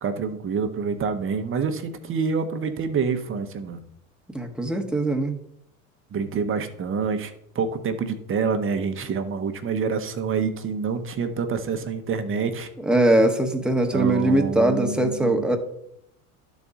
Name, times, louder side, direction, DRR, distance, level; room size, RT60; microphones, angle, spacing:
voice 1, 0.0-3.8 6.1-12.7 13.9-15.4, right 5 dB, 30° right, 8 dB, 0.9 m, -27 dB
voice 2, 4.3-5.4 12.9-15.6, right 1 dB, ahead, 2 dB, 1.1 m, -21 dB
12.0 x 4.1 x 3.6 m, 0.75 s
hypercardioid pair, 80°, 42 cm